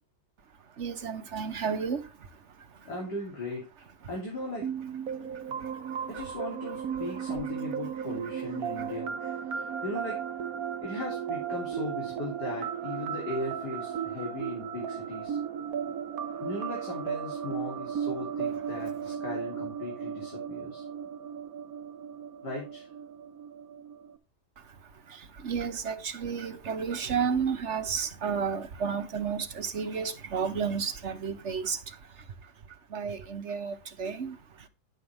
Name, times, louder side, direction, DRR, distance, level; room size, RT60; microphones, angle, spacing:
voice 1, 0.8-2.0 8.8-8.9 25.1-32.0 32.9-34.4, right 6 dB, 50° right, 1.3 m, -32 dB
voice 2, 2.9-3.6 4.1-4.7 6.1-10.2 10.8-15.4 16.4-20.8 22.4-22.9, left 2 dB, 80° left, 3.7 m, -38 dB
sound 1, 4.6-24.1, right 8 dB, 65° right, 1.3 m, -35 dB
10.5 x 7.5 x 3.3 m
omnidirectional pair, 1.7 m